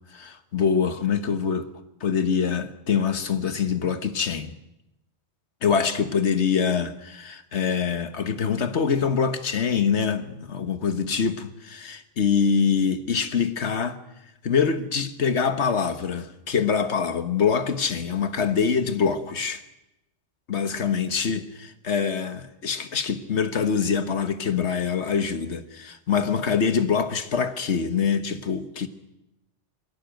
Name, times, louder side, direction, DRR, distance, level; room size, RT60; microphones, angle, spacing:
voice 1, 0.1-1.7 2.0-4.5 5.6-14.0 14.4-19.6 20.5-28.9, left 6 dB, 65° left, 1.5 m, -24 dB
22.0 x 17.0 x 9.1 m
omnidirectional pair, 1.2 m